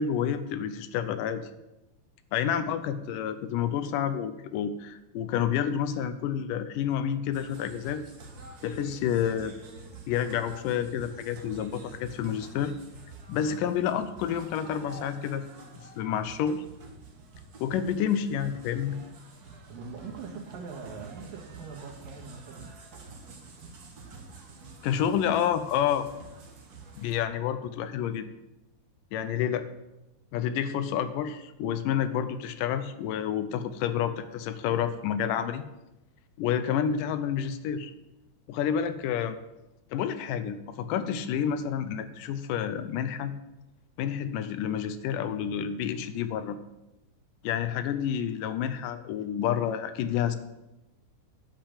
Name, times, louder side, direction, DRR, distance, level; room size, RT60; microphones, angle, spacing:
voice 1, 0.0-1.5 2.3-8.0 8.6-9.5 10.1-12.7 13.3-15.5 15.8-16.6 17.6-19.0 24.8-26.1 27.0-28.3 29.1-29.7 30.3-35.6 36.4-37.9 38.5-39.4 39.9-43.3 44.0-46.6 47.4-50.4, left 9 dB, 80° left, 12 dB, 2.2 m, -29 dB
sound 1, 7.3-27.2, right 3 dB, 60° right, 1.0 m, -48 dB
voice 2, 19.7-22.7, right 5 dB, 90° right, 3 dB, 3.1 m, -42 dB
10.5 x 5.3 x 7.4 m, 0.96 s
omnidirectional pair, 3.9 m